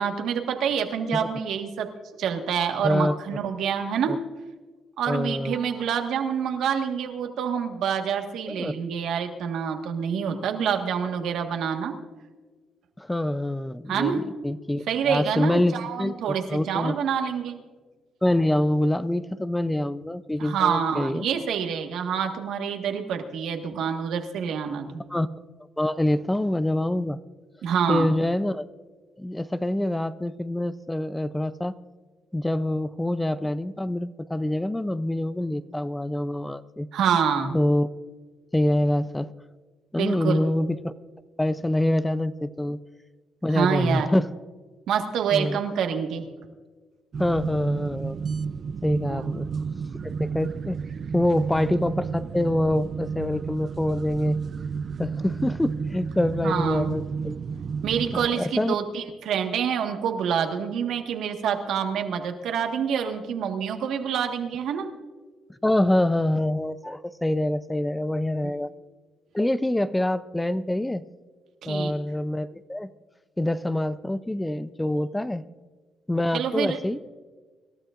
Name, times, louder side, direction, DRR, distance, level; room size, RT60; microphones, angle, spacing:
voice 1, 0.0-1.9 2.2-4.1 5.0-11.9 13.9-14.2 14.9-17.6 20.4-25.1 27.6-28.1 36.9-37.6 40.0-40.5 43.5-44.1 44.9-46.2 49.1-49.5 56.4-56.9 57.8-64.9 68.4-68.6 71.6-71.9 76.3-76.8, right 7 dB, 80° right, 4 dB, 1.5 m, -27 dB
voice 2, 2.8-3.1 4.1-4.2 5.1-5.8 8.5-8.7 13.0-16.1 16.5-16.9 18.2-21.3 25.1-25.3 25.8-27.2 27.9-28.7 29.2-31.7 32.3-36.9 37.5-37.9 38.5-39.3 39.9-40.9 41.4-42.8 43.4-44.3 45.3-45.6 47.2-48.2 48.8-49.5 50.0-50.8 51.1-54.4 55.0-57.4 58.1-58.8 65.6-68.7 69.3-71.0 71.7-72.9 73.4-75.4 76.1-77.0, left 1 dB, 10° left, 14 dB, 0.5 m, -25 dB
sound 1, 47.1-58.3, right 5 dB, 50° right, 0.5 m, -31 dB
26.0 x 12.5 x 2.5 m, 1.4 s
cardioid pair, 90°, 0 cm